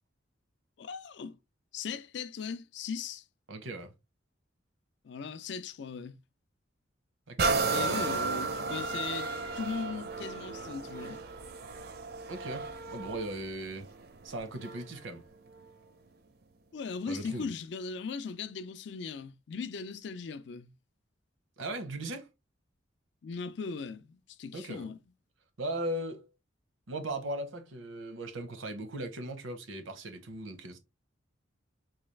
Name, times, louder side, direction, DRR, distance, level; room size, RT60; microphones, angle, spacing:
voice 1, 0.8-1.4 1.7-3.2 5.0-6.2 7.6-11.2 16.7-20.7 23.2-25.0, left 5 dB, 60° left, 0.4 m, -38 dB
voice 2, 3.5-3.9 7.3-8.3 12.3-13.9 14.2-15.2 17.1-17.5 21.6-22.3 24.5-24.9 25.6-26.3 26.9-30.8, right 1 dB, 85° right, 0.8 m, -38 dB
sound 1, 7.4-15.0 15.6-15.7, right 4 dB, 50° right, 0.5 m, -34 dB
4.1 x 2.3 x 3.2 m
head